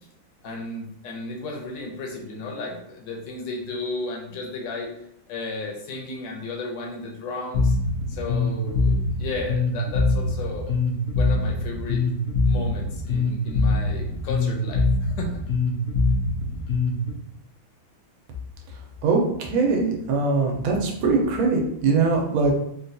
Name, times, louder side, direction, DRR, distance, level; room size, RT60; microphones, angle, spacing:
voice 1, 0.4-4.9 5.3-7.7 8.1-10.7 11.1-12.0 12.4-15.4, left 2 dB, 70° left, 0 dB, 1.3 m, -34 dB
Bass guitar, 7.5-17.1, left 3 dB, 90° left, 0.7 m, -23 dB
voice 2, 19.0-22.5, right 4 dB, 85° right, 1 dB, 1.5 m, -22 dB
3.9 x 2.3 x 2.6 m, 0.78 s
omnidirectional pair, 2.2 m